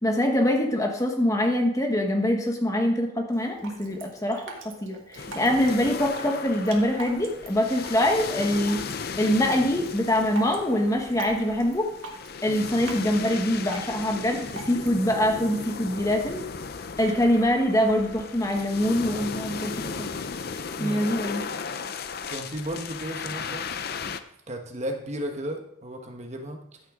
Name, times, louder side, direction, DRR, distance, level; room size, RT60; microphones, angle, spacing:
voice 1, 0.0-8.8 9.2-11.9 12.4-16.5 17.0-20.1 20.8-21.4, left 1 dB, 15° left, 2 dB, 1.2 m, -24 dB
Drip, 3.3-15.3, right 3 dB, 70° right, 1.7 m, -43 dB
sound 1, 5.2-24.2, left 5 dB, 50° left, 0.5 m, -36 dB
voice 2, 22.3-23.7 24.5-26.8, right 1 dB, 35° right, 3 dB, 1.2 m, -34 dB
14.0 x 6.7 x 3.7 m, 0.76 s
head